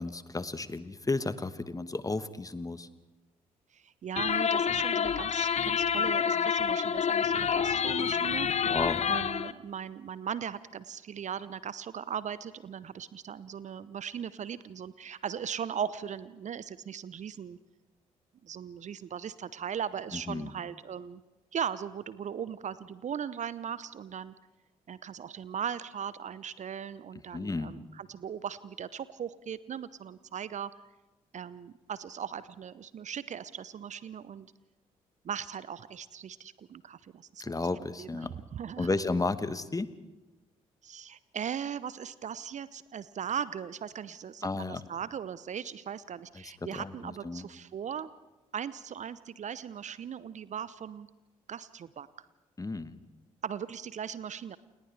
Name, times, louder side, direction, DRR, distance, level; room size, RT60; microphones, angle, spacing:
voice 1, 0.0-2.9 8.6-9.0 20.1-20.5 27.3-27.7 37.4-38.4 38.8-39.9 44.4-44.8 46.3-47.5 52.6-53.0, left 3 dB, 20° left, 13 dB, 1.2 m, -33 dB
voice 2, 3.7-8.8 9.0-17.6 18.4-21.2 21.5-24.3 24.9-30.7 31.3-34.5 35.2-37.5 38.0-39.0 40.8-48.1 48.5-51.1 51.5-52.1 53.4-54.6, right 8 dB, 45° right, 17 dB, 0.7 m, -38 dB
sound 1, 4.2-9.5, left 7 dB, 40° left, 0.8 m, -28 dB
29.0 x 28.0 x 3.4 m, 1.1 s
figure-of-eight pair, 40°, 18 cm